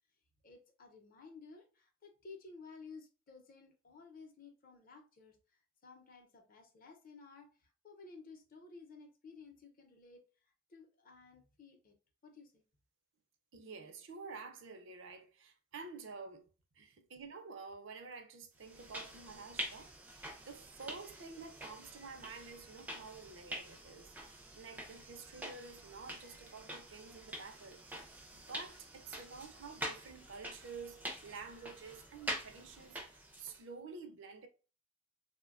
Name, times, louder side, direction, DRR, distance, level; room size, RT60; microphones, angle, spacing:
voice 1, 0.4-11.9 12.2-12.6, left 4 dB, 45° left, 0.6 m, -55 dB
voice 2, 13.5-16.5 16.7-34.5, right 4 dB, 60° right, 0.5 m, -50 dB
sound 1, 18.6-33.6, right 1 dB, 10° right, 0.4 m, -46 dB
3.2 x 2.1 x 2.4 m
head